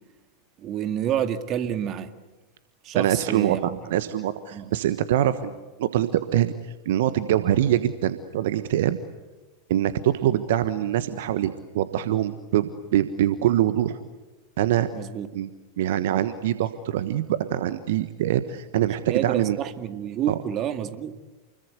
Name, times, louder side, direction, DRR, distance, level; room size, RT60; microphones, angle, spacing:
voice 1, 0.6-2.1 2.8-3.8 4.5-4.7 14.9-15.3 19.1-21.2, right 10 dB, 40° right, 2.0 m, -28 dB
voice 2, 2.9-6.5 6.8-9.0 9.7-14.0 14.6-14.9 15.3-15.5 15.8-19.6 20.3-20.4, right 12 dB, 65° right, 1.3 m, -24 dB
29.0 x 22.5 x 8.3 m
figure-of-eight pair, 90°, 0 cm